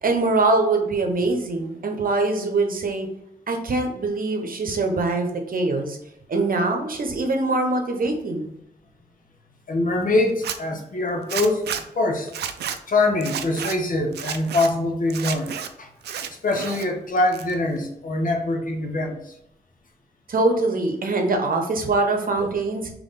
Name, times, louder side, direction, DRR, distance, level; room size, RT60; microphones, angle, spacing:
voice 1, 0.0-3.1 3.5-6.0 6.3-8.5 20.3-22.9, right 3 dB, 60° right, 4 dB, 0.9 m, -23 dB
voice 2, 9.7-11.7 11.9-12.3 12.9-15.5 15.8-15.9 16.4-19.3, left 2 dB, 55° left, 3 dB, 1.0 m, -23 dB
Zipper (clothing), 10.3-10.6 11.3-11.8 12.3-12.8 13.2-13.8 14.1-14.7 15.1-15.7 16.0-16.9 17.2-17.8, right 8 dB, 80° right, 0.4 m, -31 dB
3.4 x 3.0 x 4.0 m, 0.79 s
supercardioid pair, 45°, 17 cm